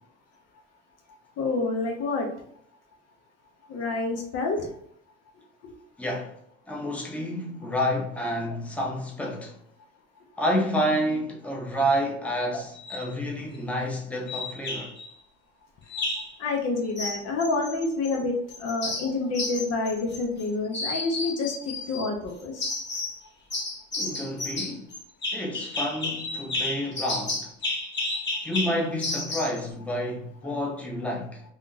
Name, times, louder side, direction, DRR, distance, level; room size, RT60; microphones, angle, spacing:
voice 1, 1.4-2.3 3.7-4.7 16.4-18.3 18.6-22.8 30.4-30.5, left 3 dB, 55° left, 0.9 m, -28 dB
voice 2, 6.0-6.3 6.7-9.6 10.4-14.9 24.0-24.9 25.3-27.5 28.4-31.4, equal, 5° left, 0.8 m, -29 dB
sound 1, 12.7-13.1 14.3-15.1 15.9-16.3 17.0-18.2 18.5-20.4 20.7-22.1 22.6-23.2 23.5-29.6, left 2 dB, 35° left, 1.3 m, -32 dB
3.5 x 2.5 x 2.7 m
hypercardioid pair, 75°, 30 cm